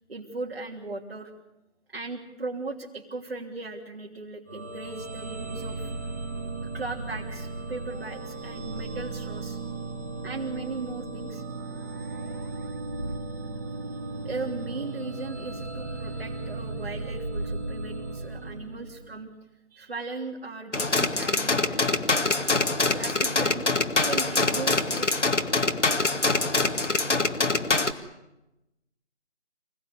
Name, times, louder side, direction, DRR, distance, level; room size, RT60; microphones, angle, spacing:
voice 1, 0.1-1.3 1.9-5.9 6.7-9.6 10.2-11.4 14.2-19.3 19.7-22.4 22.9-23.6 24.0-25.6, right 3 dB, 55° right, -1 dB, 3.1 m, -37 dB
sound 1, 4.5-19.2, right 2 dB, 15° right, 1.5 m, -36 dB
sound 2, 20.7-27.9, left 3 dB, 85° left, 2.1 m, -24 dB
26.5 x 18.0 x 9.8 m, 0.95 s
figure-of-eight pair, 165°, 35 cm